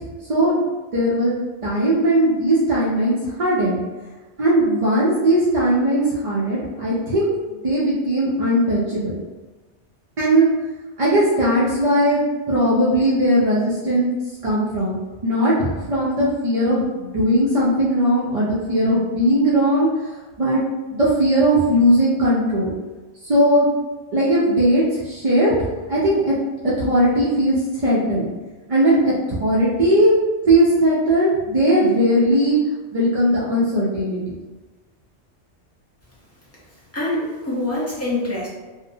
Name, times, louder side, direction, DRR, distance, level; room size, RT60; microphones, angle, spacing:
voice 1, 0.9-1.3 1.6-3.8 4.4-7.3 7.6-9.1 10.2-10.5 11.0-14.1 14.4-14.9 15.2-19.9 20.4-20.6 20.9-22.7 23.2-23.7 24.1-25.5 25.9-26.3 26.6-28.3 28.7-29.1 29.4-30.1 30.4-32.6 32.9-34.2, right 1 dB, 50° right, -8 dB, 0.4 m, -18 dB
voice 2, 36.9-38.5, left 2 dB, 15° left, -7 dB, 0.6 m, -25 dB
2.7 x 2.1 x 2.6 m, 1.2 s
omnidirectional pair, 1.2 m